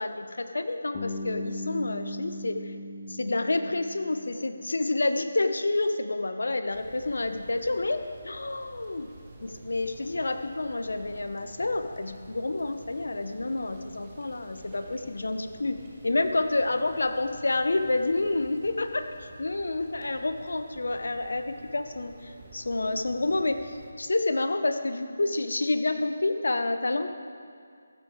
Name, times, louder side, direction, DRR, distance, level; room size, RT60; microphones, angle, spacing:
voice 1, 0.0-2.7 3.1-9.1 9.4-15.8 16.0-27.1, left 2 dB, 70° left, 8 dB, 0.7 m, -29 dB
Bass guitar, 0.9-4.9, left 1 dB, 25° left, 0.8 m, -38 dB
sound 1, 6.7-23.9, right 2 dB, 25° right, 1.4 m, -50 dB
14.0 x 7.9 x 4.6 m, 2.2 s
figure-of-eight pair, 155°, 0 cm